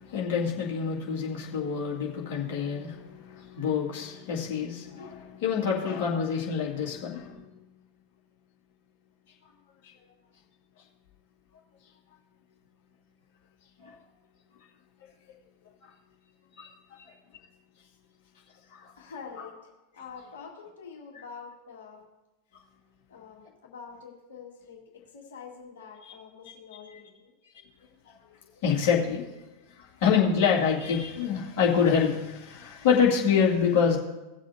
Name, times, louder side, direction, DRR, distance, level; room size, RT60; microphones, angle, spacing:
voice 1, 0.0-7.4 13.8-13.9 15.8-15.9 16.6-16.7 18.7-18.9 26.0-26.1 28.6-29.3 29.8-34.0, left 6 dB, 50° left, -4 dB, 2.3 m, -26 dB
voice 2, 19.0-22.1 23.1-27.3, left 5 dB, 65° left, 0 dB, 1.9 m, -46 dB
17.5 x 7.4 x 2.8 m, 1.1 s
figure-of-eight pair, 90°, 0 cm